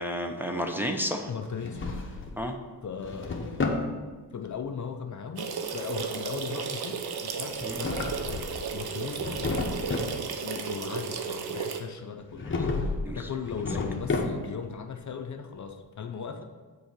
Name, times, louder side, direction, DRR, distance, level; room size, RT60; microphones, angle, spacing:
voice 1, 0.0-1.3 2.4-2.5 7.6-7.8 12.3-12.6 13.0-13.3, equal, 5° right, 2 dB, 0.8 m, -32 dB
voice 2, 1.3-1.9 2.8-3.9 4.3-8.5 8.7-10.1 10.4-12.5 13.1-16.5, left 6 dB, 45° left, 6 dB, 0.7 m, -38 dB
Drawer open or close, 1.4-2.4 2.8-3.9 7.5-8.7 9.1-10.2 12.4-13.1 13.4-14.7, left 3 dB, 30° left, 1.1 m, -31 dB
sound 1, 5.4-11.8, right 6 dB, 65° right, 0.9 m, -34 dB
6.8 x 4.7 x 6.6 m, 1.4 s
cardioid pair, 90°, 40 cm